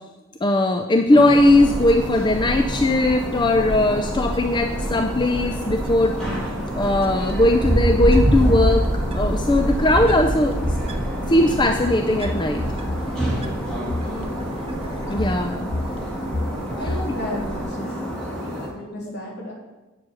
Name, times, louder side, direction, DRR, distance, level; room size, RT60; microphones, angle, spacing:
voice 1, 0.4-6.2 6.7-8.9 9.1-10.8 11.3-12.6 15.1-15.6 16.8-17.0, left 1 dB, 20° left, 6 dB, 0.5 m, -19 dB
sound 1, 1.1-18.7, equal, 5° left, 2.8 m, -30 dB
Wind, 1.3-17.6, right 1 dB, 30° right, 0.9 m, -27 dB
voice 2, 14.0-14.5 16.8-19.5, equal, 55° left, -3 dB, 3.2 m, -34 dB
8.9 x 7.2 x 6.3 m, 1.1 s
head